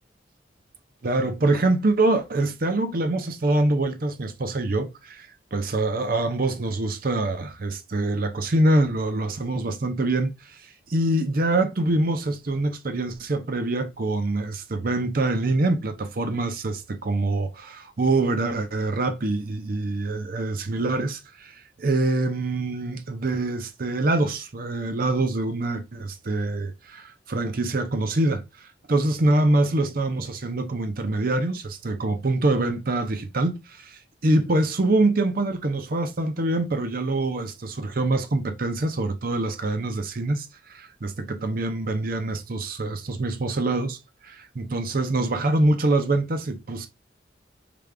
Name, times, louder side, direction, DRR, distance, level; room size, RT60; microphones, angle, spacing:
voice 1, 1.0-10.3 10.9-28.4 28.9-44.0 44.2-46.9, right 2 dB, 50° right, 0.7 m, -25 dB
5.1 x 2.4 x 3.3 m
head